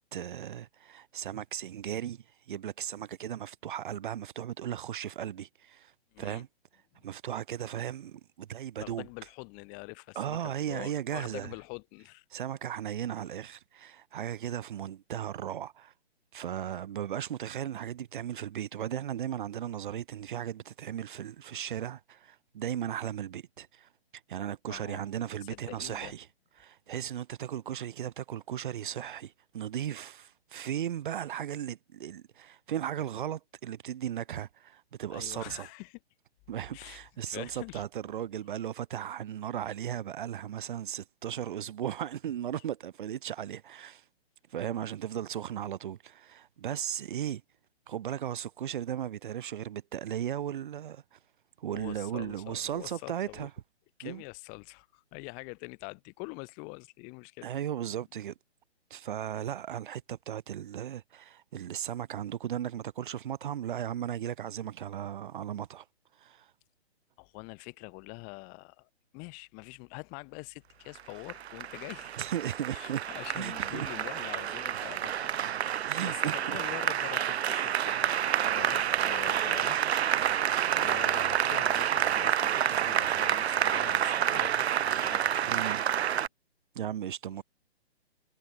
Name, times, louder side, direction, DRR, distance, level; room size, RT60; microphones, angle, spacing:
voice 1, 0.1-5.9 6.2-6.5 7.0-9.0 10.1-11.5 12.3-15.9 16.3-23.9 24.3-26.3 26.6-35.7 36.5-44.0 44.5-47.4 47.9-51.2 51.6-53.5 54.0-54.2 57.4-58.3 58.9-65.8 66.2-66.5 72.2-73.0 73.3-73.9 75.8-76.6 85.5-85.8 86.7-87.4, right 10 dB, 50° right, 3.2 m, -36 dB
voice 2, 6.1-6.4 6.9-7.1 8.8-12.3 24.7-25.0 25.4-26.1 35.1-36.0 36.7-37.0 37.3-37.8 51.7-53.5 54.0-57.5 67.2-72.2 72.7-75.3 75.7-79.8 80.8-85.7 87.3-87.4, left 35 dB, 25° left, 5.3 m, -45 dB
Applause, 71.0-86.3, right 10 dB, 75° right, 0.6 m, -29 dB
hypercardioid pair, 150°, 33 cm